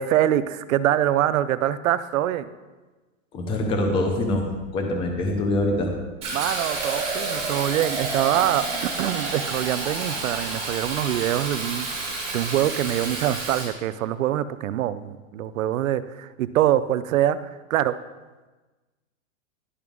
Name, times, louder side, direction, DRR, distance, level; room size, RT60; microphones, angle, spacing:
voice 1, 0.0-2.5 6.3-18.0, right 12 dB, 80° right, 14 dB, 0.6 m, -24 dB
voice 2, 3.3-4.5 4.7-5.9, left 1 dB, 15° left, 3 dB, 0.6 m, -24 dB
Fill (with liquid), 6.2-13.7, right 3 dB, 15° right, 2.9 m, -30 dB
11.0 x 5.9 x 3.6 m, 1.2 s
supercardioid pair, 155°, 40 cm